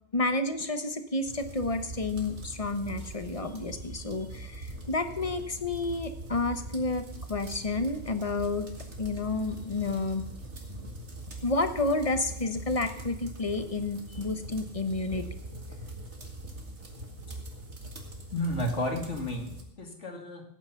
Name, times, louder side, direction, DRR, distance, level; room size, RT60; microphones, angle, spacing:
voice 1, 0.1-8.7 9.0-10.2 11.4-15.3, left 2 dB, 30° left, 8 dB, 1.2 m, -30 dB
sound 1, 1.3-19.6, right 1 dB, 70° right, 2.3 m, -42 dB
voice 2, 18.3-20.4, left 1 dB, 85° left, 2 dB, 2.6 m, -32 dB
16.5 x 8.8 x 5.8 m, 0.73 s
omnidirectional pair, 1.2 m